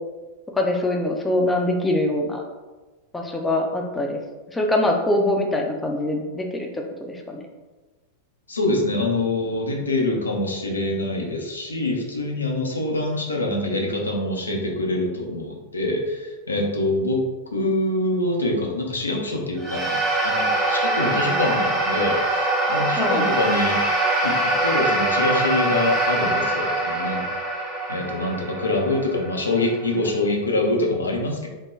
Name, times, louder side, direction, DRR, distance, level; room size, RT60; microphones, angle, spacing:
voice 1, 0.5-2.4 3.1-4.2 4.5-7.4 23.0-23.2, left 1 dB, 10° left, 1 dB, 0.4 m, -23 dB
voice 2, 8.5-17.2 17.5-20.0 20.2-23.8 24.2-27.3 27.6-31.5, left 2 dB, 75° left, 1 dB, 0.5 m, -25 dB
sound 1, 19.6-30.1, right 2 dB, 20° right, 0.8 m, -23 dB
3.5 x 2.2 x 3.1 m, 1.2 s
figure-of-eight pair, 90°, 0 cm